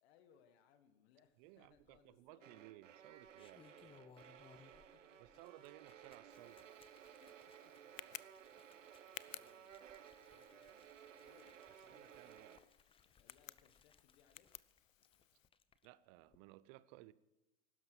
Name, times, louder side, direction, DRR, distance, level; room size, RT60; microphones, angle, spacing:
voice 1, 0.0-2.6 3.3-4.4 4.7-5.4 7.1-7.7 8.0-8.1 8.6-8.9 9.3-9.9 10.3-10.9 11.2-12.2 13.1-14.7, left 8 dB, 55° left, 1.8 m, -71 dB
voice 2, 1.4-3.6 5.2-6.6 11.9-12.6 15.8-17.1, right 17 dB, 45° right, 0.8 m, -59 dB
sound 1, 1.6-2.3 3.1-4.9 5.2-15.9 16.2-16.4, left 6 dB, 15° left, 0.8 m, -68 dB
sound 2, 2.4-12.6, right 9 dB, 75° right, 1.5 m, -58 dB
Tick, 6.3-15.5, left 10 dB, 90° left, 0.7 m, -58 dB
16.0 x 12.5 x 6.3 m
hypercardioid pair, 105°, 38 cm